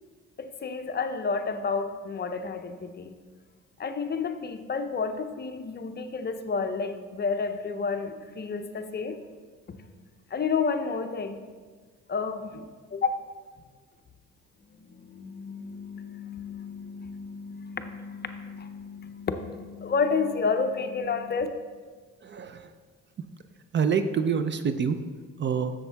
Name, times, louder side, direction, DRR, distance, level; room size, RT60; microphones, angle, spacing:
voice 1, 0.4-3.1 3.8-9.2 10.3-11.4 12.1-13.1 14.7-21.5, left 5 dB, 35° left, 8 dB, 0.5 m, -31 dB
voice 2, 22.2-22.7 23.7-25.0 25.4-25.7, right 6 dB, 40° right, 9 dB, 0.4 m, -26 dB
7.1 x 7.0 x 3.4 m, 1.5 s
cardioid pair, 90°, 30 cm